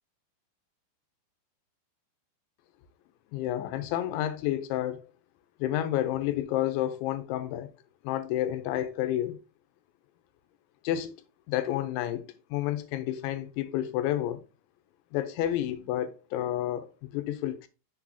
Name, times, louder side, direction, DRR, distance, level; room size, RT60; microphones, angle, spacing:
voice 1, 3.3-5.0 5.6-7.7 8.0-9.4 10.8-11.2 11.5-14.4 15.1-17.7, left 12 dB, 90° left, 3.0 m, -30 dB
6.7 x 6.1 x 2.8 m
omnidirectional pair, 5.3 m